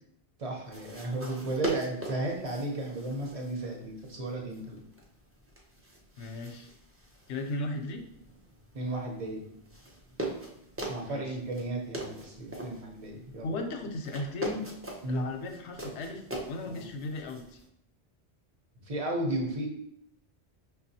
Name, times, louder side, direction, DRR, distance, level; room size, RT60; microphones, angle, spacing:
voice 1, 0.4-4.8 8.7-9.4 10.9-13.5 15.0-15.3 16.7-16.8 18.8-19.7, right 2 dB, 40° right, 1 dB, 0.7 m, -34 dB
sound 1, 0.6-17.7, right 2 dB, 20° right, 0.4 m, -42 dB
voice 2, 6.2-6.7 7.3-8.0 11.0-11.4 13.4-14.7 15.1-17.6, left 2 dB, 90° left, 4 dB, 0.9 m, -36 dB
5.5 x 2.3 x 2.7 m, 0.72 s
omnidirectional pair, 1.1 m